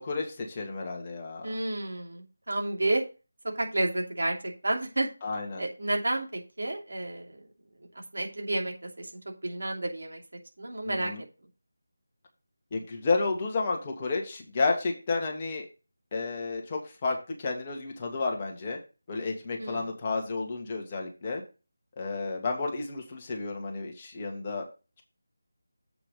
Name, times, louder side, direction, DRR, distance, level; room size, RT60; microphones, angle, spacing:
voice 1, 0.0-1.5 5.2-5.6 10.9-11.2 12.7-15.7 16.1-18.8 19.1-21.4 22.0-24.6, left 3 dB, 25° left, 1 dB, 1.8 m, -31 dB
voice 2, 1.4-3.0 3.5-5.1 5.6-7.4 8.1-9.1 9.4-10.2 10.6-11.1 19.6-19.9, right 2 dB, 65° right, 2 dB, 2.7 m, -31 dB
8.0 x 5.8 x 5.1 m, 0.31 s
figure-of-eight pair, 160°, 0 cm